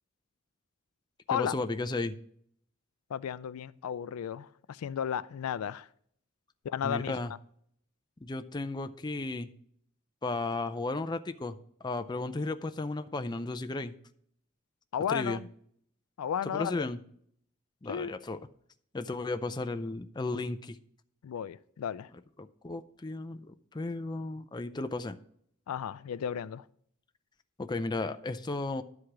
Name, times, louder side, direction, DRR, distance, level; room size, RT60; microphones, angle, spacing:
voice 1, 1.3-2.1 6.8-7.3 8.2-9.5 10.2-11.6 11.8-13.9 15.1-15.4 16.5-17.0 17.8-18.4 18.9-20.8 22.4-25.2 27.6-28.8, left 2 dB, 20° left, 0.4 m, -34 dB
voice 2, 3.1-5.9 6.6-7.3 14.9-15.5 16.2-16.9 17.9-18.2 21.2-22.1 25.7-26.6, left 8 dB, 85° left, 0.3 m, -34 dB
11.5 x 4.9 x 5.9 m
head